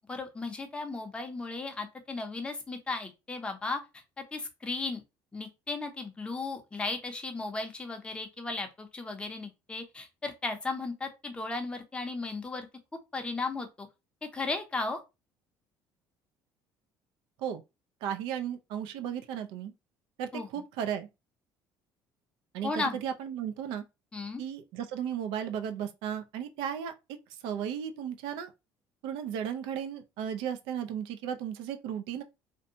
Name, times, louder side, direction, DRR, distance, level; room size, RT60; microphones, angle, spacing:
voice 1, 0.1-3.8 4.2-5.0 5.3-12.7 13.1-13.9 14.2-15.0 20.3-20.5 22.6-23.0 24.1-24.4, left 3 dB, 10° left, 0.6 m, -35 dB
voice 2, 18.0-19.7 20.2-21.1 22.5-23.8 24.4-26.9 27.4-28.5 29.0-32.2, right 9 dB, 80° right, 0.5 m, -35 dB
2.6 x 2.2 x 2.7 m
cardioid pair, 130°, 8 cm